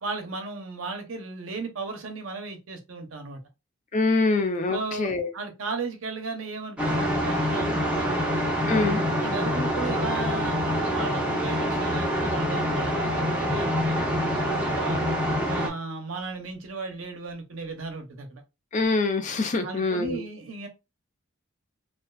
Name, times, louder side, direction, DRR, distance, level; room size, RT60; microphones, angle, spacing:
voice 1, 0.0-3.4 4.7-8.3 8.7-15.0 15.4-18.4 19.6-20.7, right 3 dB, 90° right, 0.7 m, -36 dB
voice 2, 3.9-5.3 8.7-9.0 18.7-20.2, left 3 dB, 40° left, 0.4 m, -24 dB
sound 1, 6.8-15.7, equal, 5° right, 0.5 m, -26 dB
2.4 x 2.3 x 2.2 m
head